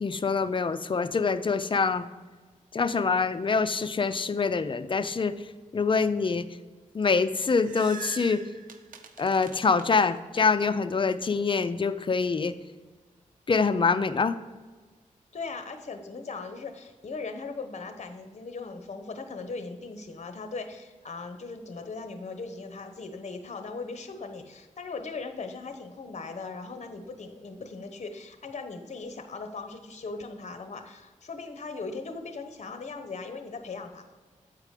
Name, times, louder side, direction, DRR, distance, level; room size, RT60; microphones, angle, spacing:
voice 1, 0.0-2.0 2.7-5.3 5.7-6.4 6.9-8.4 9.2-12.5 13.5-14.4, left 4 dB, 40° left, 11 dB, 0.5 m, -25 dB
sound 1, 7.2-10.4, right 6 dB, 90° right, 0.7 m, -45 dB
voice 2, 15.3-34.1, left 4 dB, 55° left, 7 dB, 1.0 m, -39 dB
8.3 x 4.9 x 5.0 m, 1.4 s
cardioid pair, 65°, 14 cm